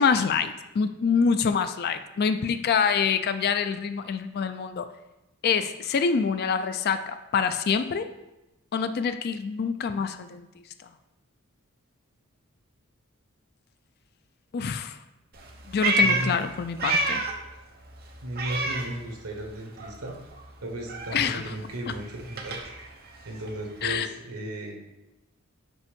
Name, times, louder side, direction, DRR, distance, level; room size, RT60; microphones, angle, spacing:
voice 1, 0.0-4.9 5.4-8.1 8.7-10.5 14.5-15.0 15.7-17.2 21.1-21.5 23.8-24.1, left 6 dB, 45° left, 10 dB, 0.4 m, -26 dB
Meow, 15.3-17.5 17.8-19.5 19.8-23.9, right 2 dB, 45° right, 0.9 m, -30 dB
voice 2, 16.0-16.4 18.2-20.1 20.6-22.6 23.2-24.8, right 1 dB, 80° right, 1 dB, 1.3 m, -35 dB
5.4 x 5.3 x 5.1 m, 0.98 s
head